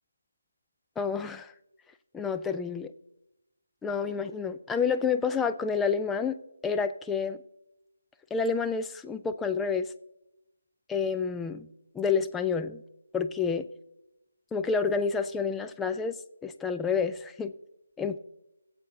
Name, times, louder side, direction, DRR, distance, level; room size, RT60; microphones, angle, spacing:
voice 1, 1.0-1.5 2.1-2.9 3.8-7.4 8.3-9.9 10.9-11.7 11.9-12.8 13.1-13.7 14.5-16.1 16.4-17.5 18.0-18.2, left 5 dB, 5° left, 9 dB, 0.3 m, -29 dB
17.0 x 7.4 x 3.8 m, 0.91 s
figure-of-eight pair, 160°, 0 cm